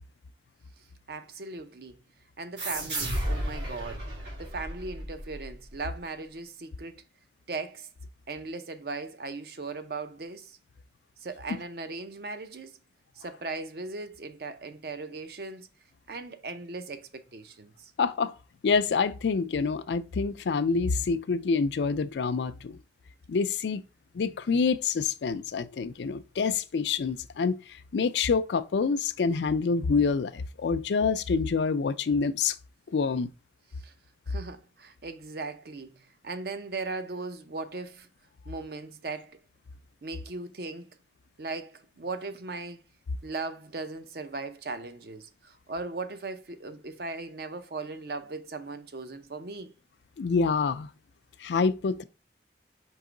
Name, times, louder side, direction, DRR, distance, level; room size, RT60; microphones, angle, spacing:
voice 1, 1.1-2.0 2.4-4.1 4.4-7.0 7.5-7.9 8.3-10.6 11.2-12.8 13.2-15.7 16.1-17.9 33.8-33.9 34.3-38.1 38.5-39.4 40.0-40.9 41.4-42.8 43.2-49.8, right 3 dB, 60° right, 0.6 m, -38 dB
sound 1, 2.6-5.8, right 1 dB, 85° right, 2.2 m, -33 dB
voice 2, 18.0-18.3 18.6-22.8 23.3-23.8 24.1-27.6 27.9-32.6 32.9-33.3 50.2-50.9 51.4-52.0, left 5 dB, 80° left, 0.4 m, -27 dB
4.7 x 3.0 x 3.7 m
head